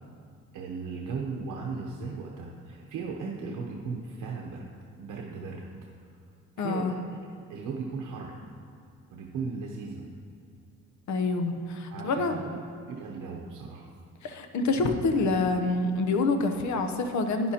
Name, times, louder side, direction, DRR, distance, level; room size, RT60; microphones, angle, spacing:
voice 1, 0.5-4.7 5.0-5.6 6.6-8.4 9.1-10.1 11.9-12.6 12.9-13.9, right 4 dB, 85° right, -1 dB, 0.9 m, -37 dB
voice 2, 6.6-6.9 11.1-12.3 14.2-17.5, left 3 dB, 65° left, 6 dB, 0.9 m, -27 dB
11.5 x 9.9 x 2.9 m, 2.3 s
cardioid pair, 130°, 31 cm